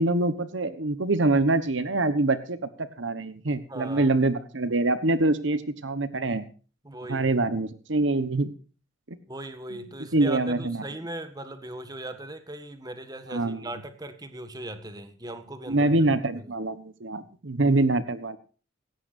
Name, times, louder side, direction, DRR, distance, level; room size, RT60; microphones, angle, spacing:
voice 1, 0.0-2.6 3.0-6.4 7.1-8.5 9.1-9.2 10.1-10.8 13.3-13.7 15.7-18.4, right 2 dB, 70° right, 12 dB, 1.2 m, -25 dB
voice 2, 3.7-4.1 6.8-7.3 9.3-16.5, right 1 dB, 20° right, 9 dB, 1.7 m, -39 dB
17.0 x 17.0 x 2.6 m, 0.37 s
head